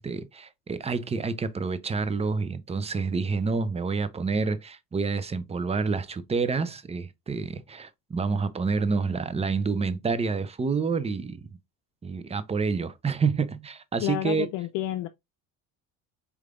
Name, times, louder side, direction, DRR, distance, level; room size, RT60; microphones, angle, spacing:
voice 1, 0.0-11.5 12.0-14.5, right 4 dB, 15° right, 0.5 m, -28 dB
voice 2, 14.0-15.1, left 14 dB, 75° left, 0.6 m, -30 dB
4.8 x 3.3 x 2.4 m
supercardioid pair, 85°, 37 cm